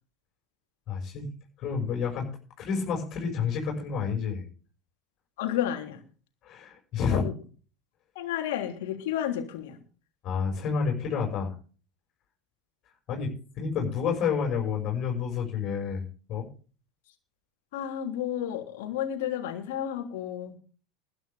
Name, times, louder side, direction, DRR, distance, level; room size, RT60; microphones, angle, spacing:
voice 1, 0.9-1.3 1.6-2.3 2.6-4.4 6.4-7.2 10.2-11.5 13.1-16.0 16.3-16.5, left 6 dB, 45° left, 0 dB, 6.1 m, -29 dB
voice 2, 5.4-6.0 7.1-7.3 8.1-9.8 17.7-20.6, left 10 dB, 65° left, 5 dB, 3.4 m, -31 dB
21.0 x 10.5 x 3.6 m, 0.38 s
figure-of-eight pair, 80°, 0 cm